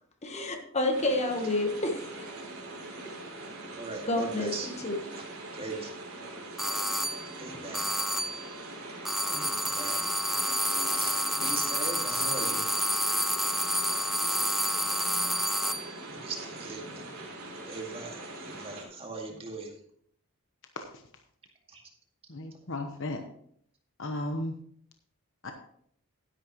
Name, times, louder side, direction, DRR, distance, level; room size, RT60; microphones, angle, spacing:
voice 1, 0.2-2.1 3.1-3.2 4.0-4.5 4.8-5.0, left 2 dB, 30° left, 4 dB, 1.3 m, -29 dB
sound 1, 0.9-18.8, right 2 dB, 70° right, 3.3 m, -42 dB
voice 2, 3.8-4.8 5.5-5.9 7.2-7.9 9.3-10.1 10.9-12.7 16.1-17.3 17.6-19.8 21.7-21.8, right 3 dB, 25° right, 1 dB, 2.1 m, -40 dB
sound 2, 6.6-7.3 7.7-8.5 9.0-15.9, equal, ahead, 0.3 m, -29 dB
voice 3, 22.3-23.2 24.0-24.6 25.4-25.5, left 1 dB, 60° left, 5 dB, 1.0 m, -35 dB
12.0 x 10.5 x 3.1 m, 0.65 s
head